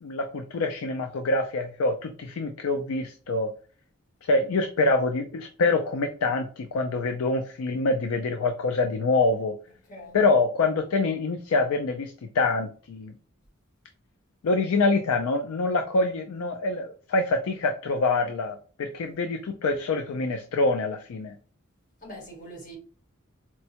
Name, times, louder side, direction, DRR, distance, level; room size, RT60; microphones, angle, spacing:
voice 1, 0.0-3.5 4.3-9.5 10.1-13.1 14.4-21.3, left 3 dB, 80° left, 0.4 m, -25 dB
voice 2, 9.8-10.2 19.0-19.2 22.0-22.8, equal, 40° left, 1.2 m, -43 dB
4.4 x 2.1 x 2.8 m
head